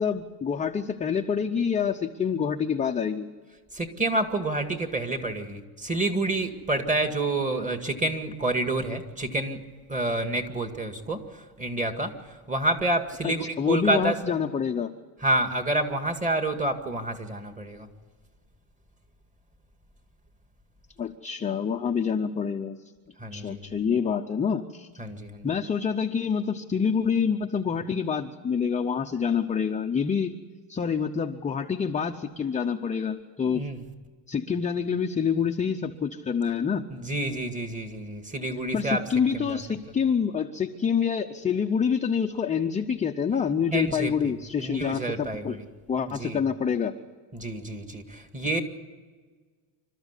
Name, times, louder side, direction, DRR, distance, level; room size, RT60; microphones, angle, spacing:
voice 1, 0.0-3.3 13.2-14.9 21.0-22.8 23.3-24.9 25.4-30.4 30.7-33.7 34.3-36.9 38.7-45.6 45.9-46.9, left 6 dB, 15° left, 4 dB, 0.6 m, -27 dB
voice 2, 3.7-9.6 9.9-14.4 15.2-17.9 23.2-23.8 25.0-25.5 33.5-33.8 36.9-39.0 39.3-39.6 43.7-44.3 44.6-45.7 46.1-46.4 47.3-48.6, right 2 dB, 15° right, 6 dB, 2.0 m, -28 dB
27.0 x 13.5 x 8.2 m, 1.5 s
cardioid pair, 140°, 48 cm